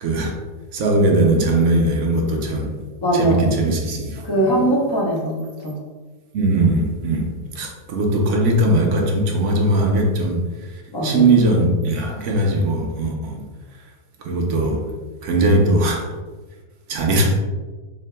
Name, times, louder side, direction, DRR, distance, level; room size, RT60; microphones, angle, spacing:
voice 1, 0.0-0.4 0.7-2.8 3.1-4.6 6.3-10.4 11.0-13.4 14.2-14.9 15.2-16.1 16.9-17.3, right 2 dB, 65° right, 1 dB, 0.7 m, -19 dB
voice 2, 3.0-3.4 4.2-5.8 10.9-11.3, right 1 dB, 40° left, -3 dB, 0.3 m, -21 dB
4.0 x 3.6 x 2.2 m, 1.3 s
omnidirectional pair, 1.7 m